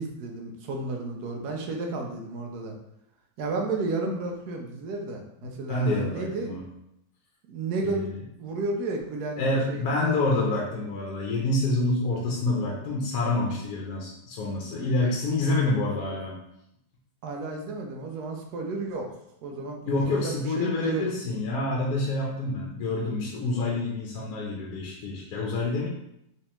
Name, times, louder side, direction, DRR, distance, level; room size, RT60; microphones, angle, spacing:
voice 1, 0.0-2.7 3.4-6.6 7.5-8.1 8.4-10.2 17.2-19.1 19.4-21.0, right 3 dB, 75° right, 2 dB, 1.2 m, -32 dB
voice 2, 5.4-6.6 9.4-16.4 19.5-25.9, left 2 dB, 70° left, -3 dB, 1.1 m, -27 dB
3.3 x 3.1 x 2.9 m, 0.80 s
omnidirectional pair, 1.7 m